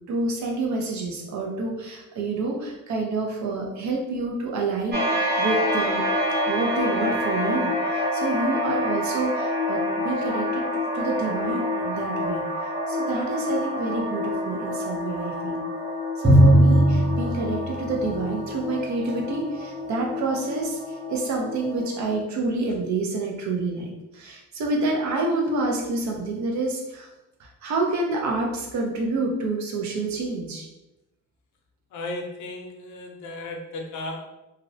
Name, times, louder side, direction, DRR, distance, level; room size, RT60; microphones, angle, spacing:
voice 1, 0.1-5.1 5.4-6.1 6.5-10.7 10.9-12.4 12.9-15.6 16.2-27.1 27.4-30.7, right 3 dB, 70° right, 1 dB, 0.7 m, -28 dB
sound 1, 4.9-22.2, left 1 dB, 35° right, 1.0 m, -28 dB
Drum, 16.2-18.6, right 1 dB, 5° left, 0.5 m, -18 dB
voice 2, 31.9-34.2, left 2 dB, 75° left, 2 dB, 0.6 m, -35 dB
2.5 x 2.0 x 2.6 m, 0.96 s
cardioid pair, 90°, 30 cm